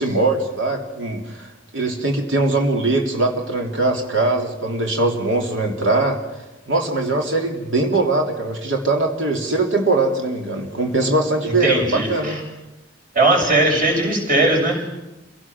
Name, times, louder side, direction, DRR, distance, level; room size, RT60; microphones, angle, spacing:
voice 1, 0.0-6.2 6.7-12.4, right 2 dB, 75° right, 1 dB, 3.2 m, -21 dB
voice 2, 11.5-12.4 13.1-14.9, right 2 dB, 45° right, 0 dB, 6.7 m, -19 dB
28.0 x 17.5 x 6.2 m, 1.0 s
head